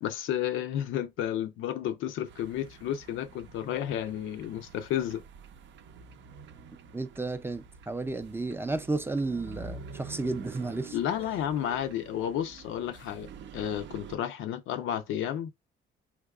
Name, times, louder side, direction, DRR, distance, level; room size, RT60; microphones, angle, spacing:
voice 1, 0.0-5.2 10.9-13.3 13.5-15.5, left 10 dB, 85° left, 0.5 m, -32 dB
sound 1, 2.3-14.2, right 5 dB, 70° right, 0.5 m, -48 dB
voice 2, 6.9-11.0, right 3 dB, 10° right, 0.4 m, -32 dB
3.5 x 2.8 x 2.3 m
cardioid pair, 90°, 20 cm